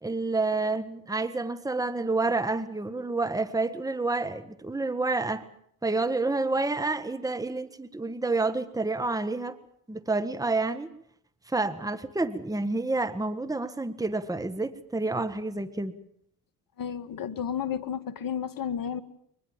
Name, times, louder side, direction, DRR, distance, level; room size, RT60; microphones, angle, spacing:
voice 1, 0.0-5.4 5.8-9.6 9.9-10.9 11.5-15.9, right 3 dB, 5° right, 11 dB, 1.6 m, -29 dB
voice 2, 16.8-19.0, left 8 dB, 45° left, 12 dB, 2.0 m, -32 dB
23.0 x 20.5 x 7.4 m, 0.69 s
supercardioid pair, 70°, 46 cm